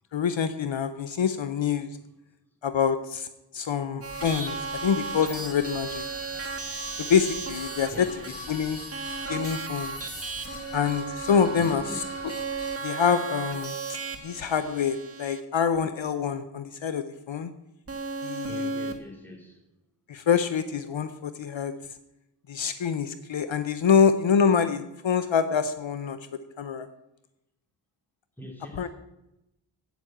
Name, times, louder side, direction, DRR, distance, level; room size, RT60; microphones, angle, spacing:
voice 1, 0.1-1.9 2.6-3.3 3.5-6.0 7.0-8.1 8.5-8.8 9.3-10.0 10.7-12.3 12.8-14.0 14.2-17.5 18.2-18.7 20.1-21.7 22.5-26.2 26.6-26.9 28.8-28.9, left 7 dB, 70° left, 0.7 m, -26 dB
sound 1, 4.0-12.8, left 3 dB, 85° left, 4.2 m, -43 dB
sound 2, 4.0-15.4 17.9-18.9, right 4 dB, 30° right, 1.4 m, -35 dB
voice 2, 7.9-8.4 11.6-12.2 18.5-19.6 28.4-28.9, left 1 dB, 5° left, 2.8 m, -43 dB
8.7 x 8.3 x 7.7 m
wide cardioid pair, 95°, 48 cm